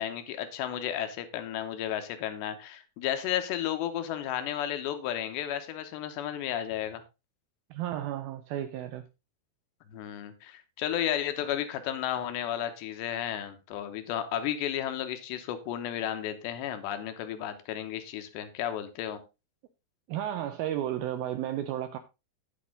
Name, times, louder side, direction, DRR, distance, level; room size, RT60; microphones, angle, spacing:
voice 1, 0.0-7.0 9.9-19.2, left 11 dB, 85° left, 3.2 m, -33 dB
voice 2, 7.7-9.0 20.1-22.0, right 11 dB, 85° right, 2.1 m, -33 dB
9.6 x 8.3 x 3.8 m
omnidirectional pair, 5.0 m